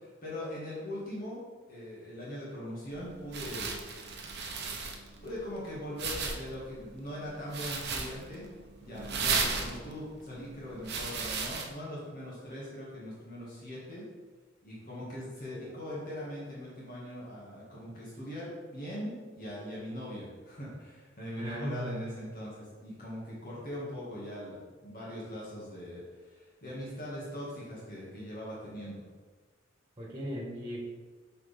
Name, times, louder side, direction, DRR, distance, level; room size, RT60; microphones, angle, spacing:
voice 1, 0.0-3.8 5.2-8.5 8.8-14.0 14.6-29.0, equal, 45° left, -7 dB, 2.1 m, -41 dB
sound 1, 2.9-11.7, right 4 dB, 55° right, 0.9 m, -36 dB
voice 2, 21.4-21.9 30.0-30.8, equal, 25° right, -4 dB, 1.7 m, -38 dB
8.2 x 4.9 x 3.6 m, 1.4 s
head